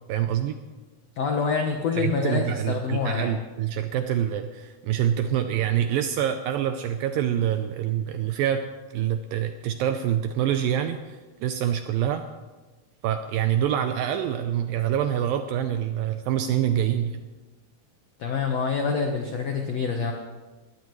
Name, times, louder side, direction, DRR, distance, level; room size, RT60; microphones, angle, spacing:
voice 1, 0.1-0.6 1.9-8.6 8.9-12.2 13.0-17.2, right 10 dB, 85° right, 8 dB, 2.0 m, -26 dB
voice 2, 1.2-3.4 18.2-20.1, left 5 dB, 80° left, 2 dB, 1.4 m, -26 dB
21.0 x 16.0 x 3.2 m, 1.2 s
omnidirectional pair, 4.7 m